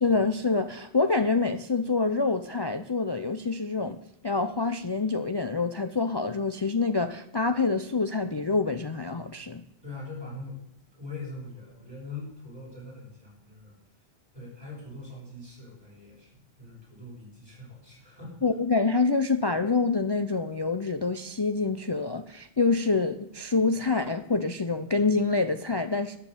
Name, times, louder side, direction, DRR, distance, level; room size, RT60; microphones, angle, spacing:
voice 1, 0.0-4.0 4.2-9.6 18.4-26.2, left 4 dB, 35° left, 0.4 m, -26 dB
voice 2, 9.8-10.7 10.9-13.7 14.3-18.5, left 2 dB, 20° right, 7.0 m, -42 dB
12.5 x 10.0 x 6.8 m
omnidirectional pair, 1.2 m